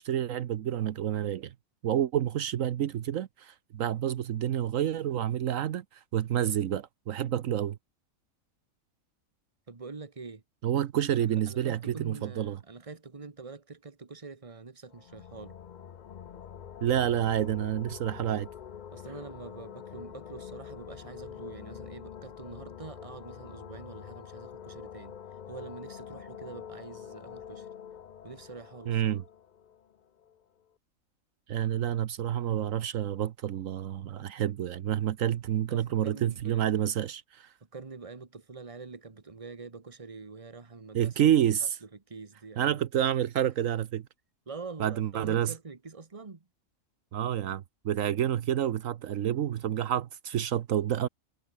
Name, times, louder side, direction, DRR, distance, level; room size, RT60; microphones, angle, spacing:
voice 1, 0.0-1.5 1.8-5.8 6.1-7.8 10.6-12.6 16.8-18.5 28.9-29.2 31.5-37.5 40.9-41.8 42.6-44.0 44.8-45.5 47.1-51.1, right 10 dB, 75° right, 1.2 m, -29 dB
voice 2, 9.7-10.4 11.1-15.6 18.9-25.2 25.5-27.7 28.2-29.0 35.7-37.0 37.6-41.3 41.8-42.8 43.6-43.7 44.5-46.5, right 4 dB, 25° right, 1.5 m, -45 dB
sound 1, 14.9-30.4, left 8 dB, 50° left, 0.6 m, -46 dB
omnidirectional pair, 1.4 m